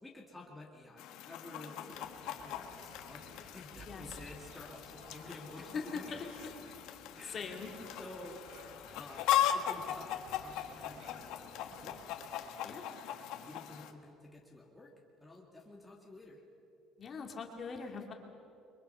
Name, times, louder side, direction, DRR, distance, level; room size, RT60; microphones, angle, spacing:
voice 1, 0.0-6.1 6.9-8.4 8.9-12.0 12.4-12.7 13.0-14.9 15.2-16.4, left 2 dB, 5° left, -3 dB, 2.2 m, -52 dB
Chicken rooster, 1.0-13.9, left 11 dB, 70° left, 1.6 m, -39 dB
sound 1, 1.9-12.3, right 2 dB, 65° right, 5.4 m, -57 dB
voice 2, 3.8-4.2 5.7-6.2 7.2-7.7 12.6-12.9 17.0-18.1, left 5 dB, 30° left, 2 dB, 2.6 m, -41 dB
29.0 x 23.5 x 5.6 m, 2.7 s
cardioid pair, 155°, 0 cm